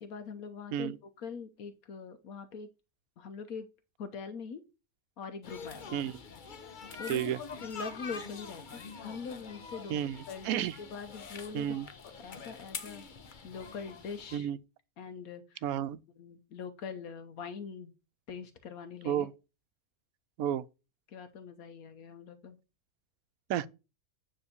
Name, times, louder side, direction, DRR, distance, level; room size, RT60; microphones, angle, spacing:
voice 1, 0.0-2.7 3.2-3.7 4.0-4.6 5.2-6.0 7.0-10.0 10.3-11.7 12.2-13.0 13.4-14.5 15.0-15.6 16.2-17.9 18.3-19.3 21.1-22.6, left 5 dB, 75° left, 1.2 m, -43 dB
sound 1, 5.4-14.4, left 5 dB, 40° left, 0.9 m, -46 dB
voice 2, 7.1-7.4 9.9-10.7 11.5-11.9 14.3-14.6 15.6-16.0 19.0-19.3 20.4-20.6 23.5-23.7, right 10 dB, 80° right, 1.0 m, -32 dB
9.5 x 3.5 x 6.8 m
omnidirectional pair, 1.5 m